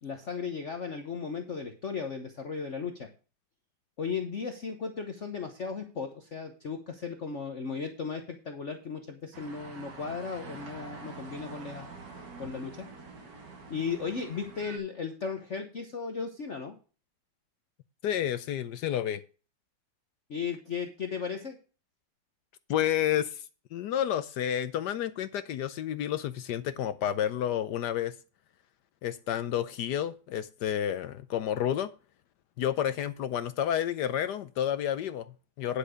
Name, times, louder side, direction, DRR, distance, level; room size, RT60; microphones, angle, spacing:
voice 1, 0.0-3.1 4.0-11.9 12.4-12.9 13.7-16.8 20.3-21.6, left 5 dB, 45° left, 1.2 m, -36 dB
sound 1, 9.3-14.8, right 4 dB, 65° right, 2.4 m, -46 dB
voice 2, 18.0-19.2 22.7-23.4 23.7-28.1 29.0-31.9 32.6-35.8, left 10 dB, 70° left, 1.1 m, -30 dB
10.0 x 6.7 x 4.9 m
omnidirectional pair, 2.1 m